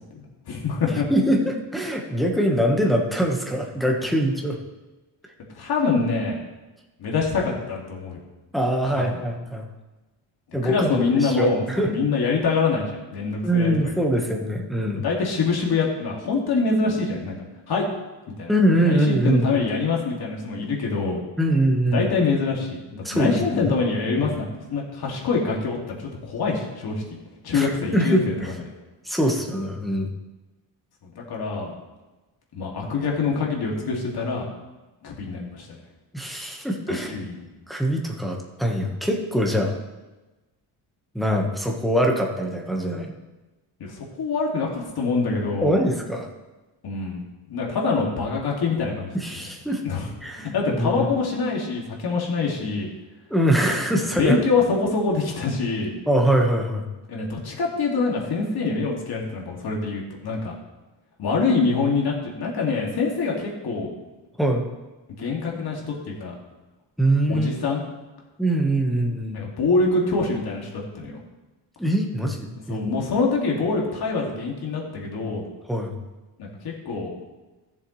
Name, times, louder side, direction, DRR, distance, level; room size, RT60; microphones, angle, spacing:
voice 1, 0.5-1.0 5.5-6.4 7.0-8.2 9.1-9.2 10.6-13.9 15.0-17.9 18.4-18.5 18.8-21.2 21.9-27.0 27.4-28.5 31.0-31.7 32.5-34.5 35.0-35.8 36.9-37.4 43.8-45.8 46.8-47.2 47.5-49.4 49.8-52.9 54.2-55.9 57.1-60.6 61.2-63.9 65.2-66.3 67.3-67.8 69.3-71.2 72.7-75.4 76.4-77.1, left 4 dB, 55° left, -2 dB, 2.4 m, -25 dB
voice 2, 1.1-4.6 8.5-9.7 10.5-11.9 13.4-15.0 18.5-19.7 21.4-22.1 23.0-23.8 24.1-24.2 27.5-28.3 29.0-30.1 36.1-37.2 37.7-39.8 41.1-43.1 45.6-46.3 49.1-49.8 50.2-51.1 53.3-54.4 56.1-56.9 64.4-64.6 67.0-67.5 68.4-69.5 71.8-72.9 75.7-75.9, right 1 dB, ahead, 0 dB, 1.3 m, -23 dB
15.0 x 7.1 x 3.2 m, 1.1 s
cardioid pair, 125°, 46 cm